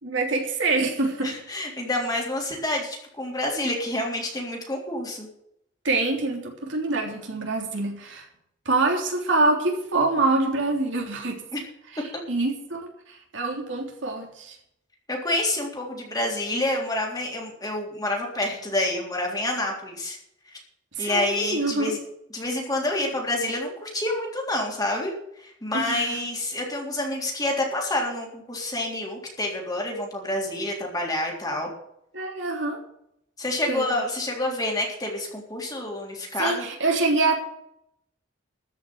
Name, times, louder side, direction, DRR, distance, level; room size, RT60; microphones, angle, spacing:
voice 1, 0.0-1.3 5.8-8.3 8.6-11.4 11.9-14.5 21.0-21.9 25.7-26.2 32.1-32.8 33.7-33.9 36.4-37.4, right 3 dB, 70° right, 1 dB, 3.4 m, -25 dB
voice 2, 1.2-5.3 11.5-11.6 15.1-20.2 20.5-20.6 21.0-22.0 22.3-31.7 33.4-36.7, left 1 dB, 20° left, -1 dB, 3.6 m, -28 dB
13.5 x 6.4 x 9.4 m, 0.74 s
head